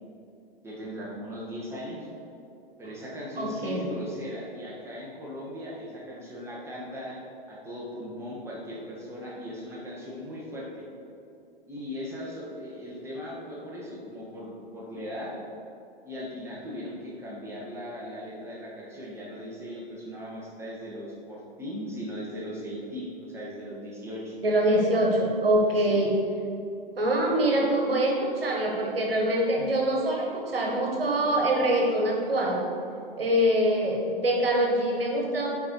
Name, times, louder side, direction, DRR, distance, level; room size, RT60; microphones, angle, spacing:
voice 1, 0.6-2.1 2.8-10.8 11.7-15.4 16.0-24.3 25.8-26.0, equal, 10° right, -5 dB, 1.3 m, -38 dB
voice 2, 3.4-3.8 24.4-26.1 26.9-32.6 33.2-35.5, right 1 dB, 75° right, 0 dB, 1.4 m, -24 dB
8.6 x 4.2 x 4.7 m, 2.6 s
figure-of-eight pair, 110°, 29 cm